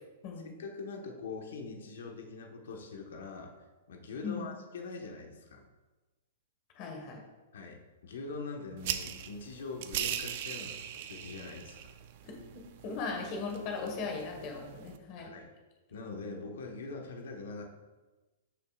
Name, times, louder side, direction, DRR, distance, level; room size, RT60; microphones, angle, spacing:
voice 1, 0.4-3.5 3.9-5.6 7.5-11.9 15.2-15.5 15.9-17.7, left 4 dB, 70° left, 2 dB, 1.2 m, -43 dB
voice 2, 6.7-7.2 12.2-15.3, left 4 dB, 30° left, 2 dB, 1.5 m, -38 dB
sound 1, 8.8-15.0, right 10 dB, 40° right, 0.5 m, -40 dB
13.0 x 6.6 x 2.4 m, 1.2 s
hypercardioid pair, 175°, 0 cm